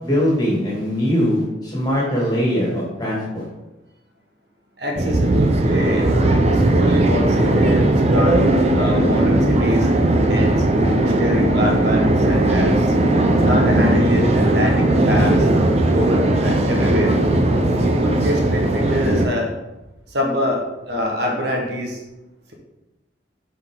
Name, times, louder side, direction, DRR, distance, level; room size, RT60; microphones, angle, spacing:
voice 1, 0.0-3.5, equal, 20° left, -5 dB, 2.4 m, -21 dB
voice 2, 4.8-9.9 10.2-10.6 11.0-12.9 13.4-15.5 15.9-17.1 17.8-19.5 20.1-22.0, left 1 dB, 55° right, 0 dB, 1.4 m, -25 dB
sound 1, 5.0-19.3, right 1 dB, 30° right, 0.6 m, -17 dB
8.0 x 4.5 x 3.8 m, 0.99 s
head